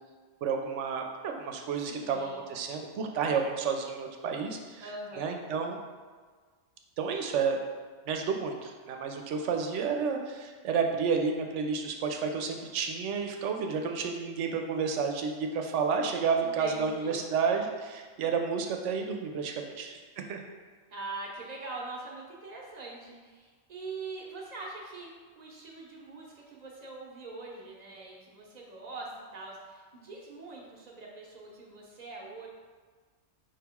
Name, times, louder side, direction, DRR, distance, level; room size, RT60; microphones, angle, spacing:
voice 1, 0.4-4.8 5.2-5.8 7.0-7.6 8.1-20.4, right 5 dB, 85° right, 3 dB, 0.9 m, -31 dB
voice 2, 1.7-2.4 4.8-5.4 16.4-17.3 20.9-32.5, right 3 dB, 40° right, -2 dB, 0.9 m, -43 dB
5.1 x 3.0 x 3.5 m, 1.5 s
omnidirectional pair, 1.2 m